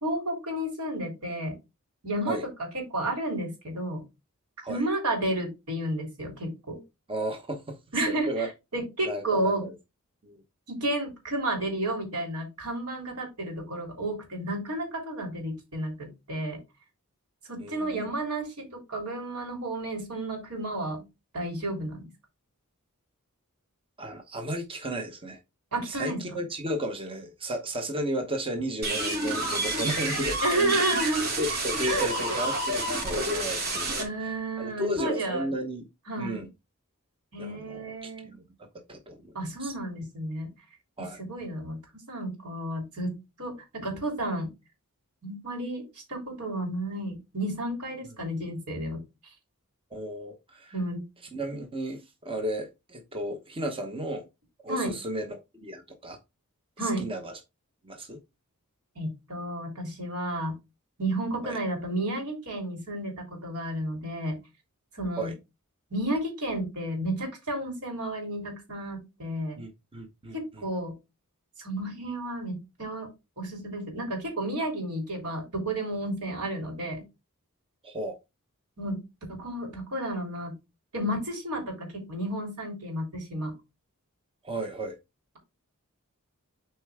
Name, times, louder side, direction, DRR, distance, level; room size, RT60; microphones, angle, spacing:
voice 1, 0.0-1.6 2.0-2.4 2.7-4.0 4.7-6.8 7.9-9.7 10.7-16.6 17.5-21.0 21.3-22.1 25.7-26.4 30.4-31.3 31.9-32.1 33.3-33.4 34.0-35.5 36.1-36.4 37.3-38.3 39.3-40.5 41.0-41.8 42.1-44.5 45.2-45.8 46.1-49.0 50.7-51.0 54.7-54.9 56.8-57.1 59.0-60.6 61.0-64.4 64.9-65.3 65.9-69.6 70.3-70.9 71.6-73.1 73.4-77.0 78.8-79.0 79.3-80.6 80.9-83.5, right 1 dB, 80° right, 3.5 m, -32 dB
voice 2, 7.1-8.5 9.0-9.7 10.2-10.4 17.6-18.1 24.0-25.4 25.9-30.4 31.4-35.8 36.2-36.5 37.4-38.4 38.9-39.7 41.0-41.2 49.9-50.7 51.3-54.3 54.6-56.2 56.8-57.3 57.8-58.2 61.4-61.6 65.2-65.3 69.6-70.6 77.8-78.2 84.4-85.0, right 1 dB, 25° right, 1.0 m, -34 dB
sound 1, 28.8-34.0, right 1 dB, 45° right, 3.0 m, -29 dB
8.0 x 4.5 x 3.5 m
head